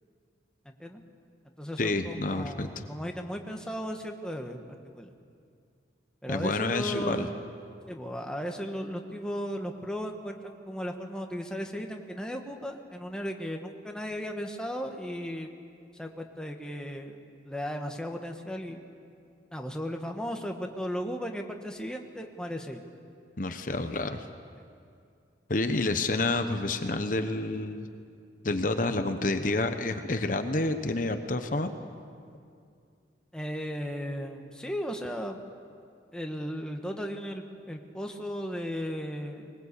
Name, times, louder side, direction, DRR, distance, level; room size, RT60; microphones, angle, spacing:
voice 1, 0.6-1.0 1.6-5.1 6.2-7.4 7.9-15.5 15.9-17.2 17.4-18.8 19.5-22.8 33.3-35.4 36.1-39.5, equal, 5° left, 3 dB, 1.3 m, -36 dB
voice 2, 1.8-2.9 6.3-7.3 23.4-24.2 25.5-27.9 28.4-31.7, left 2 dB, 45° left, 8 dB, 1.0 m, -29 dB
20.5 x 20.5 x 8.4 m, 2.4 s
head